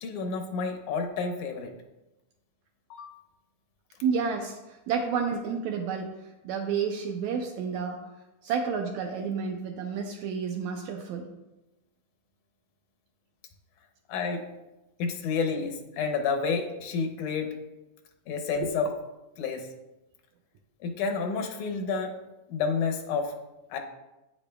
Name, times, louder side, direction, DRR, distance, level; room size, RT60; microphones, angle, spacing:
voice 1, 0.0-1.7 2.9-3.1 5.0-5.1 14.1-14.5 15.0-17.6 18.3-18.9 19.4-19.7 20.8-22.2 22.5-23.3 23.7-23.8, left 5 dB, 85° left, 4 dB, 2.3 m, -30 dB
voice 2, 4.0-6.1 6.4-8.1 8.4-11.3 18.6-18.7, right 6 dB, 80° right, 2 dB, 1.8 m, -30 dB
8.7 x 8.5 x 2.3 m, 1.0 s
omnidirectional pair, 3.5 m